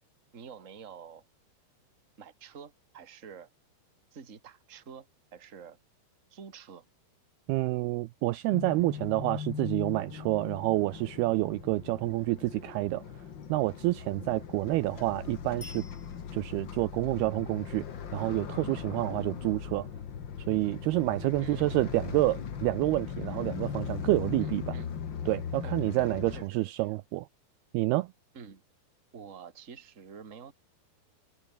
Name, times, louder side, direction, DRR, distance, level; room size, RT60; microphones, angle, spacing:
voice 1, 0.3-1.2 2.2-3.5 4.1-5.1 5.3-5.8 6.3-6.8 21.4-21.8 24.4-24.9 25.6-27.0 28.3-28.6 29.1-30.5, right 6 dB, 25° right, 1.9 m, -48 dB
voice 2, 7.5-13.0 13.5-15.8 16.3-17.8 18.1-19.9 20.5-24.8 25.3-27.3 27.7-28.1, right 19 dB, 80° right, 2.4 m, -28 dB
sound 1, 8.5-26.4, left 7 dB, 75° left, 1.0 m, -39 dB
Bicycle bell, 15.6-16.7 25.8-25.9, left 4 dB, 20° left, 2.0 m, -50 dB
omnidirectional pair, 4.9 m